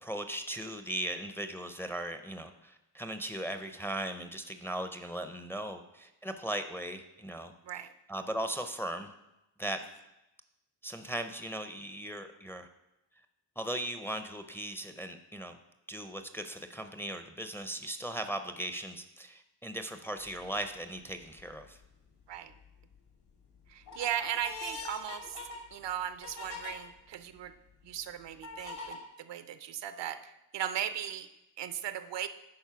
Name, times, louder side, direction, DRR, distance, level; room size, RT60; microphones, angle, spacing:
voice 1, 0.0-7.5 8.1-9.1 9.6-9.8 10.8-12.7 13.6-15.6 15.9-21.8, right 1 dB, 5° left, 7 dB, 0.4 m, -38 dB
sound 1, 20.3-20.6 21.2-21.9 22.4-23.0 23.4-26.7 27.4-27.5 28.4-29.0, left 3 dB, 80° left, 2.1 m, -43 dB
voice 2, 23.7-25.4 25.7-27.5 27.8-30.2 30.5-31.3 31.6-32.3, right 10 dB, 85° right, 11 dB, 0.7 m, -37 dB
10.5 x 4.3 x 5.7 m, 0.92 s
wide cardioid pair, 145°, 42 cm